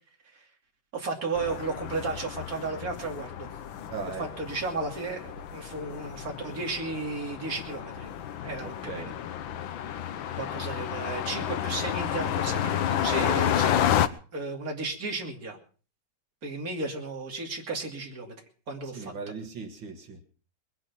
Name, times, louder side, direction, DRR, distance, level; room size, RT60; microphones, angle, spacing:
voice 1, 0.9-3.5 4.4-8.1 8.4-9.1 10.4-13.8 14.3-15.6 16.4-18.3 18.7-19.1, right 3 dB, 50° right, 1 dB, 3.1 m, -34 dB
sound 1, 1.3-14.1, left 10 dB, 85° left, 1.7 m, -31 dB
voice 2, 3.9-4.3 8.6-9.1 18.8-20.2, right 5 dB, 80° right, 4 dB, 2.6 m, -38 dB
21.0 x 10.5 x 6.0 m, 0.41 s
omnidirectional pair, 2.1 m